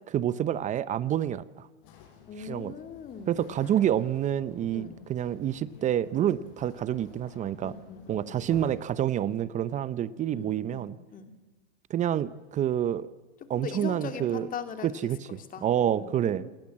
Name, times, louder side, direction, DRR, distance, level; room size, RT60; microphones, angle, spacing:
voice 1, 0.1-1.7 2.4-2.7 3.3-7.7 8.1-11.0 11.9-13.1 13.5-14.5 14.8-16.5, right 10 dB, 20° right, 17 dB, 0.8 m, -28 dB
sound 1, 1.8-8.8, left 9 dB, 50° left, 5.8 m, -52 dB
voice 2, 2.3-3.4 4.7-5.0 7.6-8.4 10.3-11.3 13.4-14.9 15.3-16.5, left 6 dB, 25° left, 8 dB, 2.8 m, -40 dB
28.0 x 21.0 x 7.5 m, 1.2 s
hypercardioid pair, 125°, 35 cm